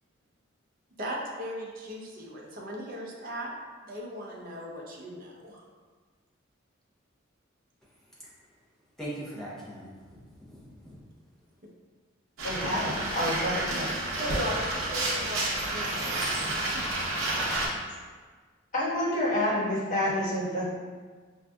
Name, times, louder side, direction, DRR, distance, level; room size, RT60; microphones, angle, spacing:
voice 1, 1.0-3.5 3.9-5.7 14.2-16.9, equal, 45° right, -2 dB, 0.6 m, -37 dB
voice 2, 9.0-11.0, right 1 dB, ahead, -9 dB, 0.8 m, -41 dB
voice 3, 12.4-13.9 18.7-20.6, left 1 dB, 40° left, -9 dB, 1.3 m, -28 dB
sound 1, 12.4-17.7, right 2 dB, 80° right, 0.7 m, -30 dB
4.6 x 2.6 x 2.3 m, 1.5 s
head